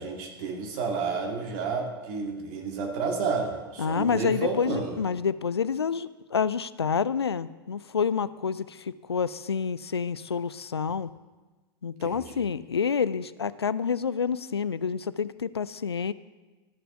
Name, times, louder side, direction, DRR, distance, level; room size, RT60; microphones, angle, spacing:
voice 1, 0.0-5.0 12.0-12.2, right 4 dB, 45° right, 1 dB, 2.2 m, -31 dB
voice 2, 3.8-11.1 11.8-16.1, left 6 dB, 80° left, 17 dB, 0.4 m, -28 dB
13.0 x 6.7 x 5.9 m, 1.2 s
figure-of-eight pair, 90°, 13 cm